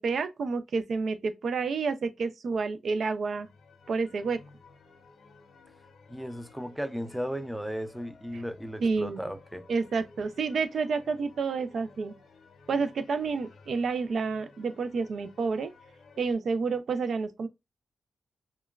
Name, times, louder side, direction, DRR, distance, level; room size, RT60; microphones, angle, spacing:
voice 1, 0.0-3.5 3.9-4.4 8.3-8.4 8.8-9.2 9.7-12.1 12.7-15.7 16.2-17.5, right 4 dB, 75° right, 0.3 m, -29 dB
sound 1, 3.2-16.3, left 4 dB, 85° left, 0.6 m, -56 dB
voice 2, 6.1-9.6, equal, ahead, 0.4 m, -35 dB
2.9 x 2.2 x 2.2 m
cardioid pair, 85°, 0 cm